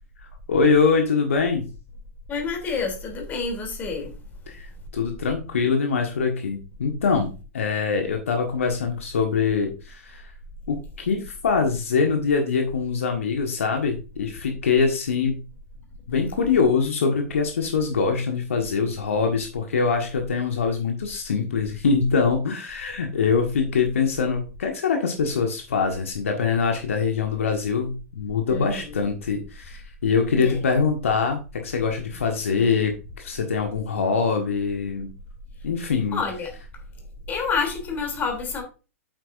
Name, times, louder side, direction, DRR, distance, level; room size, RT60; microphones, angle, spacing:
voice 1, 0.5-1.6 4.5-10.3 10.7-15.4 16.1-35.1 35.6-36.2, left 5 dB, 65° left, 1.5 m, -23 dB
voice 2, 2.3-4.1 28.5-29.0 30.3-30.6 36.1-36.6 37.3-38.6, left 4 dB, 25° left, 3.1 m, -28 dB
8.9 x 8.0 x 2.6 m
figure-of-eight pair, 105°, 8 cm